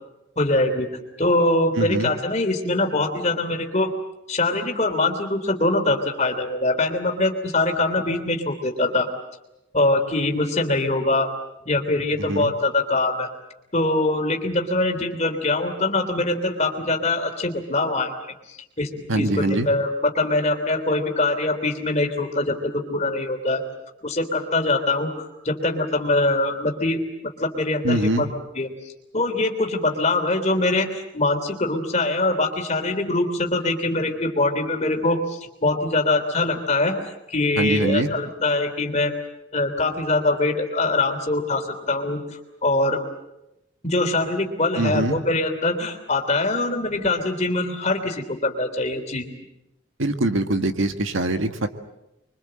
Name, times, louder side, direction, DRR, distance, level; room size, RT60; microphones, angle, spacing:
voice 1, 0.4-0.9 1.2-3.9 4.3-9.1 9.7-11.3 11.7-13.3 13.7-18.2 18.5-23.6 24.0-28.3 28.6-39.1 39.5-42.2 42.6-43.0 43.8-49.2, left 2 dB, 35° left, 4 dB, 3.3 m, -23 dB
voice 2, 1.8-2.1 12.3-12.5 19.1-19.7 27.8-28.3 37.6-38.1 44.8-45.2 50.0-51.7, right 1 dB, 75° right, 7 dB, 1.8 m, -23 dB
26.5 x 24.0 x 7.7 m, 0.91 s
head